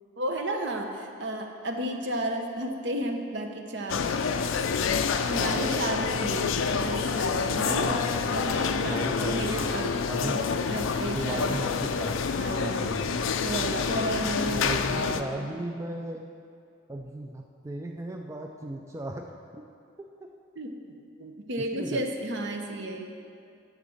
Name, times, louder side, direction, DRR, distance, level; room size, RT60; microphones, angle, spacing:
voice 1, 0.2-4.1 5.2-7.9 8.3-10.4 10.7-11.6 12.4-12.9 13.4-15.5 20.6-20.9 21.2-23.1, right 1 dB, 60° right, 4 dB, 0.8 m, -33 dB
sound 1, 3.9-15.2, left 5 dB, 75° left, 0.4 m, -27 dB
voice 2, 5.3-5.7 7.5-8.4 8.8-9.7 10.1-10.4 11.1-12.3 12.6-13.2 14.5-16.3 16.9-19.3 19.6-19.7 20.0-20.1 21.6-22.0, right 1 dB, 15° right, 2 dB, 0.3 m, -36 dB
10.5 x 4.1 x 7.1 m, 2.4 s
head